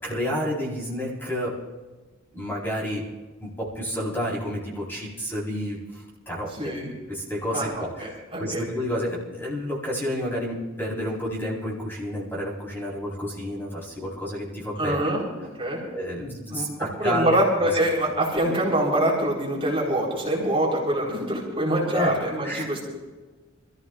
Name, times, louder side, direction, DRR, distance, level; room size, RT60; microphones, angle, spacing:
voice 1, 0.0-1.5 2.3-3.0 3.4-6.7 7.1-8.1 8.4-15.0 15.9-17.7 21.9-22.1 22.4-22.7, equal, 10° left, -6 dB, 4.5 m, -30 dB
voice 2, 6.5-6.9 7.5-7.7 8.0-8.6 14.8-15.3 15.6-15.8 16.5-16.7 17.0-22.8, right 1 dB, 25° right, -4 dB, 4.5 m, -24 dB
27.5 x 15.0 x 2.6 m, 1.3 s
head